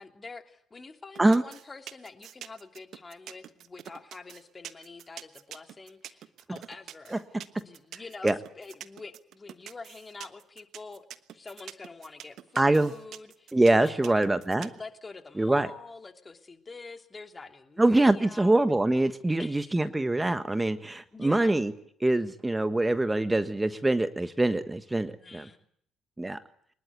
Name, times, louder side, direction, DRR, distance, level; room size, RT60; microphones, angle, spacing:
voice 1, 0.0-7.2 7.5-11.1 11.3-14.2 14.6-18.7 19.4-19.8 21.1-21.6 25.0-25.7, left 3 dB, 30° left, 5 dB, 3.0 m, -46 dB
sound 1, 1.2-14.8, right 11 dB, 60° right, 1.3 m, -45 dB
voice 2, 12.6-12.9 13.5-14.7 15.4-15.7 17.8-21.7 22.0-25.5 26.2-26.4, right 2 dB, 15° right, 10 dB, 1.4 m, -24 dB
24.5 x 21.0 x 8.2 m, 0.65 s
hypercardioid pair, 50°, 0 cm